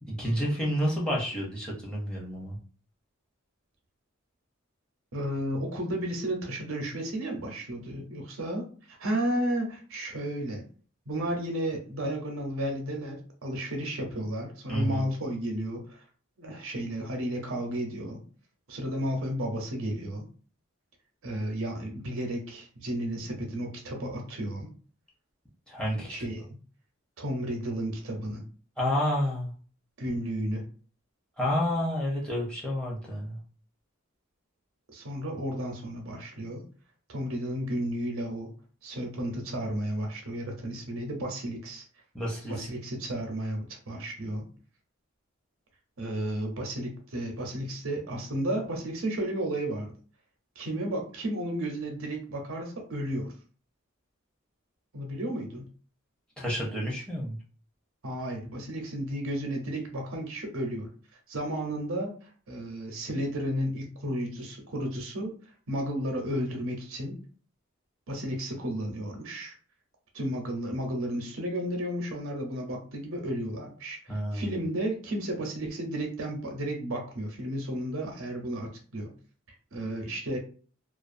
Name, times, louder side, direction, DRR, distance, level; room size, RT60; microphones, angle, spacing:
voice 1, 0.0-2.6 14.7-15.1 25.7-26.2 28.8-29.5 31.4-33.4 42.1-42.7 56.4-57.4 74.1-74.5, equal, 5° left, -4 dB, 0.6 m, -29 dB
voice 2, 5.1-10.6 11.1-16.0 16.4-18.2 18.7-20.3 21.2-24.7 26.1-26.4 27.2-28.4 30.0-30.6 34.9-36.6 37.1-38.5 38.8-41.8 42.4-44.4 46.0-49.9 50.6-53.3 54.9-55.7 58.0-60.9 61.3-65.3 65.7-67.2 68.1-69.5 70.1-79.1 79.7-80.4, right 1 dB, 75° right, 2 dB, 0.7 m, -33 dB
2.4 x 2.2 x 2.5 m, 0.41 s
head